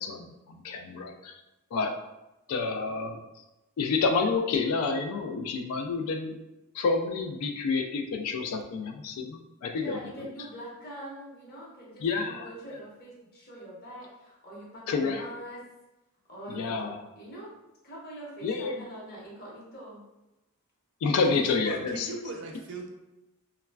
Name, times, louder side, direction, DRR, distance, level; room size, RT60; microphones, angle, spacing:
voice 1, 0.0-1.3 1.7-1.9 2.5-3.2 3.8-6.4 6.7-10.0 12.0-12.5 14.9-15.2 16.5-17.0 18.4-18.8 21.0-22.1, left 4 dB, 85° left, 0.3 m, -29 dB
voice 2, 9.7-15.6 16.3-17.5 17.8-20.0, right 1 dB, 45° left, 0.9 m, -44 dB
voice 3, 21.2-22.9, right 3 dB, 60° right, 0.5 m, -39 dB
3.0 x 2.3 x 2.2 m
head